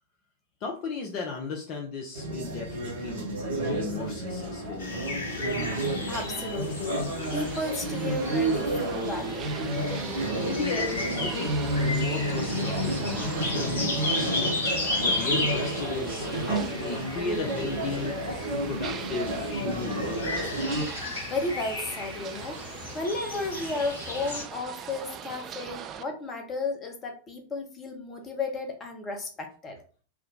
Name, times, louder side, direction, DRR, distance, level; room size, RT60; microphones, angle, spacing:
voice 1, 0.6-3.3 3.7-5.6 10.4-14.7 14.9-18.2 18.7-20.9, left 4 dB, 40° left, 1 dB, 0.6 m, -36 dB
sound 1, 2.1-20.9, right 1 dB, 60° right, 1.0 m, -30 dB
sound 2, 4.8-24.4, left 3 dB, 65° left, 0.9 m, -35 dB
voice 2, 6.1-7.1 7.3-9.5 21.3-29.8, left 3 dB, 25° left, 3 dB, 0.9 m, -33 dB
sound 3, 7.2-26.0, right 8 dB, 30° right, 0.4 m, -42 dB
3.5 x 2.2 x 3.7 m, 0.40 s
figure-of-eight pair, 90°, 0 cm